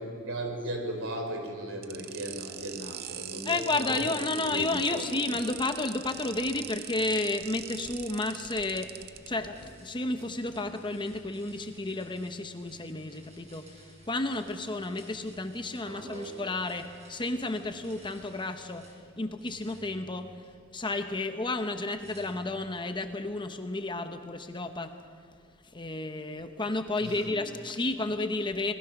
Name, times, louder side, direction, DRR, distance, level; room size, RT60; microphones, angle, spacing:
voice 1, 0.0-5.2 15.8-16.4 27.0-27.4, right 1 dB, 65° right, 3 dB, 4.2 m, -37 dB
sound 1, 1.8-9.3, right 11 dB, 45° right, 0.7 m, -42 dB
voice 2, 3.4-8.9 9.3-18.8 19.2-20.3 20.7-24.9 25.6-28.7, left 2 dB, 20° left, 7 dB, 0.9 m, -32 dB
sound 2, 6.0-19.0 19.4-20.9 22.0-22.9, right 1 dB, 30° right, 6.1 m, -56 dB
26.5 x 20.0 x 6.0 m, 2.2 s
head